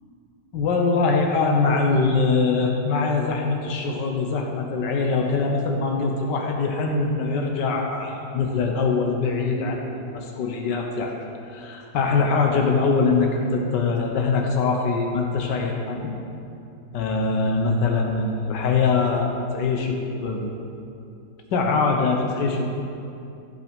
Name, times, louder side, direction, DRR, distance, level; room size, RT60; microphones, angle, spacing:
voice 1, 0.5-11.1 11.5-16.2 16.9-20.5 21.5-22.7, left 4 dB, 90° left, 2 dB, 1.6 m, -23 dB
15.0 x 5.5 x 5.2 m, 2.7 s
omnidirectional pair, 1.8 m